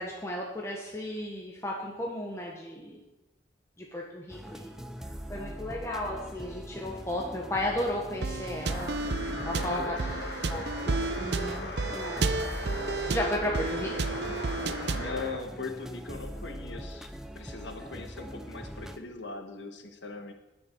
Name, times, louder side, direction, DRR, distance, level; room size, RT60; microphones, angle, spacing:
voice 1, 0.0-3.0 3.8-4.7 5.3-9.0 9.4-9.9 10.5-12.3 12.9-14.2 17.8-17.9, left 1 dB, 15° left, -1 dB, 1.2 m, -34 dB
sound 1, 4.3-19.0, equal, 5° right, 0.6 m, -42 dB
sound 2, 8.2-15.2, right 3 dB, 70° right, 0.6 m, -32 dB
sound 3, 8.6-15.4, left 1 dB, 70° left, 2.2 m, -39 dB
voice 2, 9.5-10.3 13.4-13.5 13.8-17.1 17.3-20.3, left 3 dB, 90° left, 5 dB, 1.5 m, -40 dB
19.5 x 6.7 x 4.6 m, 1.0 s
head